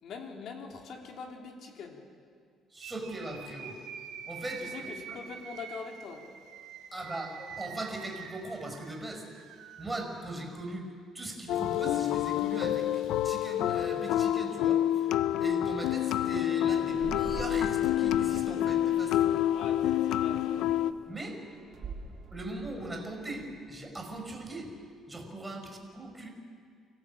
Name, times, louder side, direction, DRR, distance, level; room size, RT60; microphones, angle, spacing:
voice 1, 0.0-2.0 4.6-6.2 19.5-20.7, left 5 dB, 60° left, 2 dB, 3.5 m, -43 dB
voice 2, 2.7-3.8 4.3-5.2 6.9-9.2 9.8-10.9 11.1-15.1 15.4-19.4 21.1-21.4 22.3-24.7 25.1-26.3, right 2 dB, 15° right, 3 dB, 5.1 m, -39 dB
sound 1, 2.8-10.7, right 7 dB, 80° right, 3.0 m, -46 dB
sound 2, 11.5-20.9, left 12 dB, 80° left, 0.6 m, -28 dB
sound 3, 16.9-24.9, right 4 dB, 50° right, 3.1 m, -46 dB
25.5 x 16.5 x 8.7 m, 2.1 s
cardioid pair, 120°, 0 cm